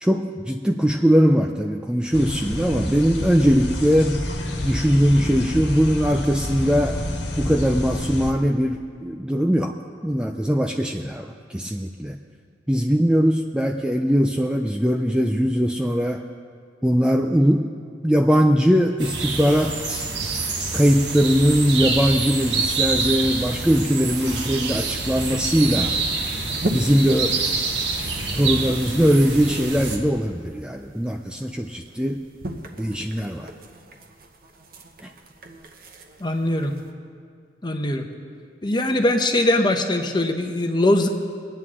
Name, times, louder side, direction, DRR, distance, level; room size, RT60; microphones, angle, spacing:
voice 1, 0.0-4.2 4.6-7.0 7.4-12.2 12.7-16.2 16.8-17.7 18.0-20.1 20.7-26.0 26.7-27.4 28.3-32.2 32.8-33.5, equal, 5° right, 3 dB, 0.4 m, -20 dB
sound 1, 2.1-8.3, left 1 dB, 85° left, 1.5 m, -29 dB
sound 2, 19.0-30.0, right 4 dB, 85° right, 1.5 m, -26 dB
sound 3, 23.1-36.9, right 1 dB, 55° right, 1.0 m, -39 dB
voice 2, 36.2-36.7 37.6-38.1 38.6-41.1, left 1 dB, 25° left, 5 dB, 0.9 m, -21 dB
23.0 x 9.3 x 3.7 m, 2.2 s
head